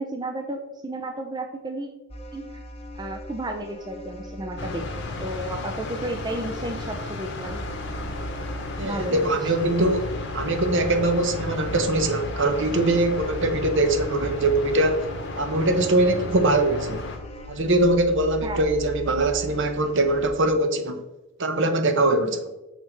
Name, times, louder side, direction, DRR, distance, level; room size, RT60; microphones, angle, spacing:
voice 1, 0.0-1.9 2.3-2.4 2.9-7.6 8.8-9.5 18.4-18.7, right 1 dB, 20° right, 4 dB, 0.5 m, -33 dB
sound 1, 2.1-20.3, equal, 25° left, 1.0 m, -38 dB
sound 2, 4.6-17.2, left 2 dB, 50° left, 1.1 m, -34 dB
voice 2, 8.8-15.1 15.4-17.1 17.5-21.0 21.4-22.5, right 2 dB, 55° right, 7 dB, 0.9 m, -22 dB
6.5 x 4.5 x 6.6 m, 1.0 s
head